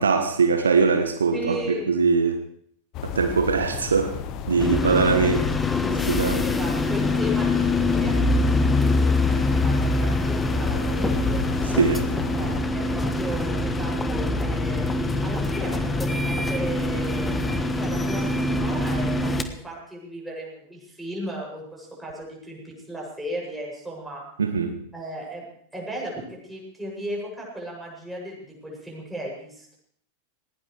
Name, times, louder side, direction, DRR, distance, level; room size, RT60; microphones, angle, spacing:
voice 1, 0.0-2.4 3.0-4.1 4.5-5.4 6.1-6.4 11.6-12.0 24.4-24.7, right 5 dB, 70° right, 7 dB, 1.3 m, -21 dB
voice 2, 1.3-1.9 4.8-5.9 6.4-11.4 12.3-14.8 15.2-24.2 24.9-25.4 25.7-29.8, equal, 5° right, -3 dB, 7.8 m, -36 dB
sound 1, 2.9-12.6, left 7 dB, 40° left, 1.3 m, -33 dB
sound 2, 4.6-19.4, left 2 dB, 10° left, 1.3 m, -24 dB
19.0 x 18.0 x 3.4 m, 0.65 s
figure-of-eight pair, 90°, 0 cm